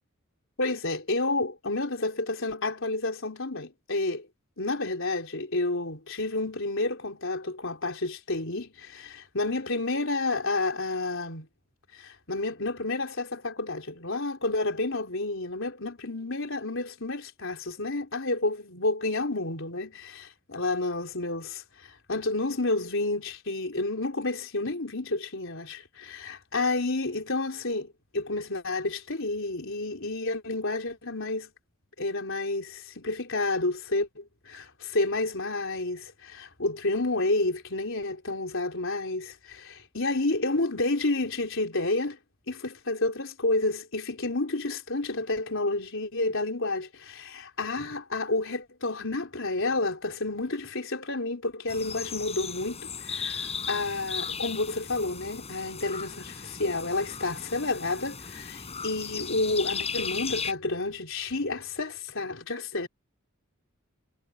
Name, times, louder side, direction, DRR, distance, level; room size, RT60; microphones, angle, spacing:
voice 1, 0.6-4.3 4.6-11.5 11.9-31.5 32.0-42.2 42.5-62.9, left 2 dB, 65° left, 4.2 m, -30 dB
sound 1, 51.7-60.5, left 6 dB, 30° left, 7.2 m, -36 dB
head